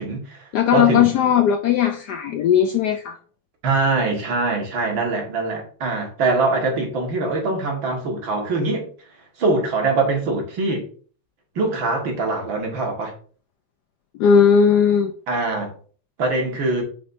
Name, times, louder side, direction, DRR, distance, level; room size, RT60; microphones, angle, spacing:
voice 1, 0.0-0.4 0.7-1.1 3.6-8.9 9.4-10.9 11.6-13.1 15.3-15.7 16.2-16.8, right 3 dB, 70° right, 2.6 m, -23 dB
voice 2, 0.5-3.2 14.1-15.1, left 8 dB, 75° left, 1.0 m, -17 dB
8.6 x 5.4 x 2.6 m
omnidirectional pair, 2.3 m